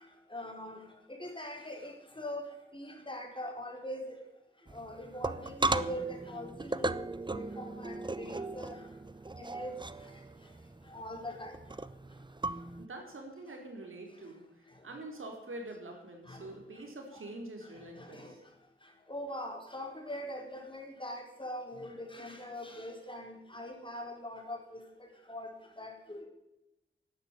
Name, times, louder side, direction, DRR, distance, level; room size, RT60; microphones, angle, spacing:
voice 1, 0.3-0.8 1.1-2.5 2.7-4.1 4.7-7.0 7.3-8.8 9.4-9.8 10.9-11.5 16.3-16.5 18.0-18.3 19.1-24.8 25.3-26.3, equal, 25° left, 2 dB, 4.8 m, -42 dB
sound 1, 4.7-12.9, right 2 dB, 20° right, 0.8 m, -37 dB
voice 2, 12.8-18.4, right 2 dB, 75° right, 2 dB, 4.7 m, -45 dB
12.0 x 11.0 x 9.3 m, 0.90 s
cardioid pair, 55°, 21 cm